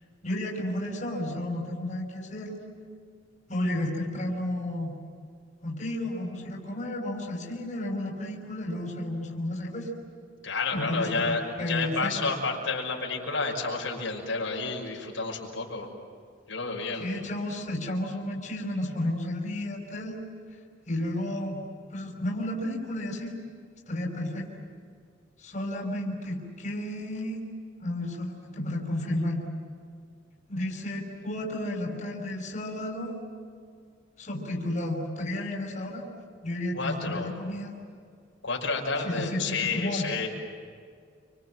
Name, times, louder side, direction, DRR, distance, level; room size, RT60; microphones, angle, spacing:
voice 1, 0.2-2.6 3.5-4.9 5.6-9.9 10.7-12.1 17.0-20.2 20.9-21.6 21.9-23.3 23.9-24.5 25.4-27.4 27.8-29.4 30.5-33.1 34.2-36.0 36.4-37.7 39.0-40.1, left 1 dB, 40° left, -1 dB, 5.6 m, -32 dB
voice 2, 10.4-11.4 11.7-15.9 16.5-17.1 36.7-37.3 38.4-40.3, left 4 dB, 75° left, -1 dB, 5.7 m, -30 dB
29.5 x 26.0 x 7.7 m, 2.1 s
head